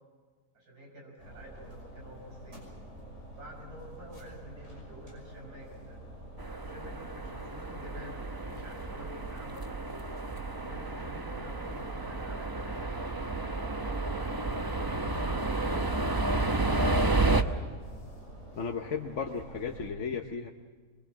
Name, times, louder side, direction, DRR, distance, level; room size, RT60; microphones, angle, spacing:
voice 1, 0.5-2.6 3.4-6.0 6.5-10.1 10.5-14.0 14.6-16.6, equal, 90° right, 0 dB, 5.9 m, -49 dB
sound 1, 1.2-19.9, right 1 dB, 50° right, 6.3 m, -47 dB
sound 2, 6.4-17.4, right 2 dB, 20° right, 0.7 m, -31 dB
voice 2, 18.6-20.5, left 5 dB, 55° left, 3 dB, 1.2 m, -34 dB
23.5 x 22.5 x 7.5 m, 1.4 s
omnidirectional pair, 1.6 m